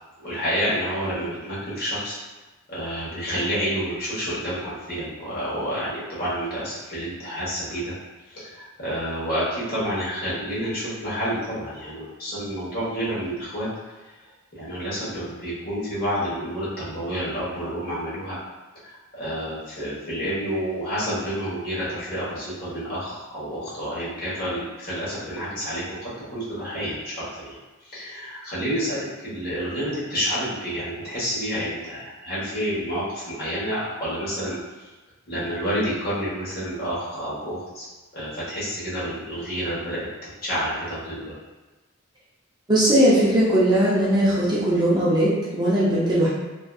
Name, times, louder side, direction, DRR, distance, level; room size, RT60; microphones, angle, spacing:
voice 1, 0.2-2.1 2.7-7.9 8.3-13.7 14.5-18.4 18.8-27.5 27.9-34.9 35.3-37.9 38.1-40.1 40.4-41.3, equal, 45° left, -9 dB, 1.0 m, -29 dB
voice 2, 42.7-46.3, right 1 dB, 20° right, -8 dB, 0.5 m, -19 dB
2.5 x 2.2 x 2.3 m, 1.2 s
head